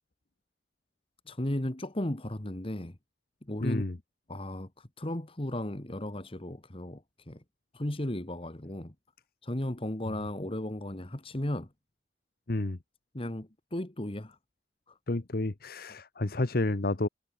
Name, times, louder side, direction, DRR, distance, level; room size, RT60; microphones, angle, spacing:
voice 1, 1.3-3.0 3.4-3.8 4.3-7.4 7.7-8.9 9.4-11.7 13.1-14.4, left 1 dB, 30° left, 1.7 m, -35 dB
voice 2, 3.6-4.0 12.5-12.8 15.1-17.1, left 2 dB, 55° left, 1.0 m, -30 dB
head